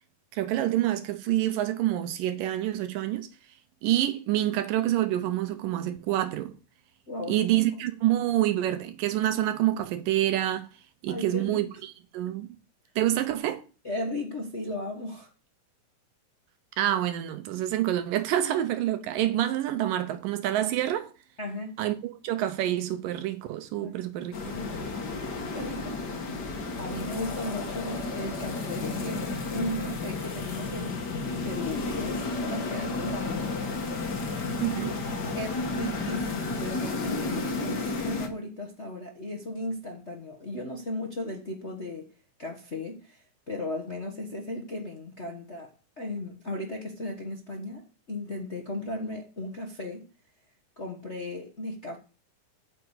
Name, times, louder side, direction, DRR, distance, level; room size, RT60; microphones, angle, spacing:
voice 1, 0.3-3.3 3.8-6.5 7.3-10.7 11.0-12.5 13.0-13.6 16.8-21.1 21.8-24.5 34.6-35.0, right 13 dB, 85° right, 2.5 m, -27 dB
voice 2, 7.1-7.4 11.1-11.6 13.8-15.3 21.4-21.8 23.8-23.9 24.5-24.9 25.2-26.2 26.8-32.2 32.5-33.5 34.8-34.9 35.3-42.1 42.4-45.7 46.0-50.1 50.8-52.0, left 1 dB, 65° left, 0.6 m, -36 dB
sound 1, 24.3-38.3, left 3 dB, 40° left, 1.6 m, -32 dB
9.6 x 6.0 x 8.2 m
omnidirectional pair, 3.8 m